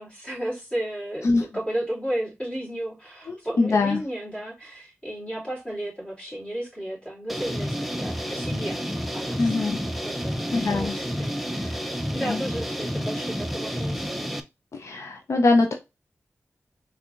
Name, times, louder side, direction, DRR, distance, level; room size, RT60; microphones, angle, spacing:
voice 1, 0.0-8.8 9.1-9.6 10.0-11.8 12.1-14.1, right 1 dB, 20° left, 2.8 m, -33 dB
voice 2, 3.3-4.0 9.4-9.8 10.5-11.0 12.2-12.4 14.7-15.7, left 3 dB, 75° left, 0.6 m, -23 dB
sound 1, 7.3-14.4, equal, ahead, 0.6 m, -30 dB
4.4 x 3.5 x 2.5 m
wide cardioid pair, 90°, 5 cm